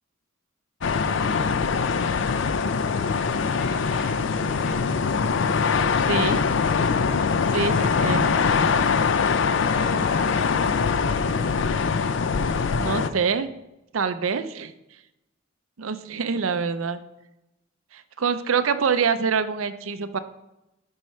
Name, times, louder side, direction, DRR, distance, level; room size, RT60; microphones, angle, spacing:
sound 1, 0.8-13.1, left 5 dB, 65° left, 0.4 m, -23 dB
voice 1, 3.6-6.6 9.7-10.4, left 2 dB, 50° left, 0 dB, 1.7 m, -41 dB
voice 2, 6.1-6.4 7.5-8.4 12.8-13.5 13.9-14.7 15.8-17.0 17.9-20.2, right 5 dB, 85° right, 10 dB, 0.6 m, -25 dB
12.0 x 4.6 x 3.1 m, 0.93 s
head